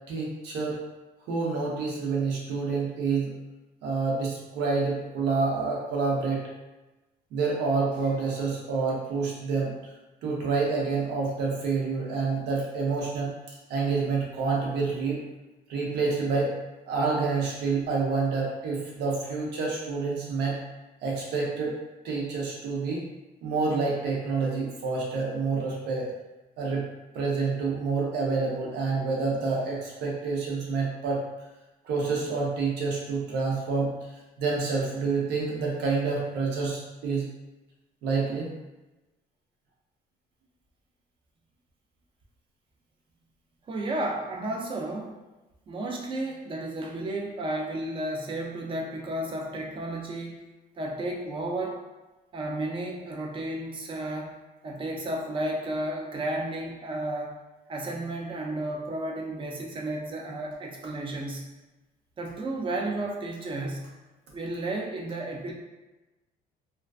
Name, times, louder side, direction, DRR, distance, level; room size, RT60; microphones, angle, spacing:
voice 1, 0.1-0.8 1.3-3.3 3.8-6.5 7.3-9.9 10.2-13.3 13.7-15.2 15.7-16.5 16.9-20.6 21.0-21.8 22.0-23.0 23.4-26.1 26.6-26.9 27.1-31.2 31.8-37.2 38.0-38.5, right 4 dB, 80° right, -3 dB, 0.8 m, -28 dB
voice 2, 43.7-45.2 45.7-50.5 50.8-51.8 52.3-54.4 54.6-57.4 57.7-61.5 62.2-63.9 64.3-65.5, right 1 dB, 30° right, 1 dB, 0.4 m, -32 dB
2.3 x 2.3 x 2.3 m, 1.1 s
cardioid pair, 110°, 17 cm